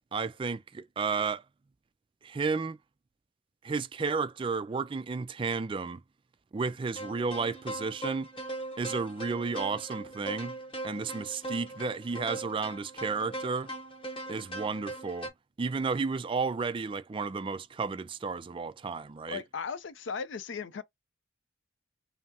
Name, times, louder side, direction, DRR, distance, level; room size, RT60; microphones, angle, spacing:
voice 1, 0.1-1.4 2.2-2.8 3.6-6.0 6.5-8.3 8.8-10.5 10.8-13.7 14.3-15.3 15.6-19.4, right 4 dB, 25° right, 0.3 m, -32 dB
sound 1, 6.9-15.3, right 1 dB, 25° left, 1.0 m, -40 dB
voice 2, 19.3-20.8, left 5 dB, 70° left, 0.5 m, -37 dB
5.5 x 2.0 x 2.8 m
head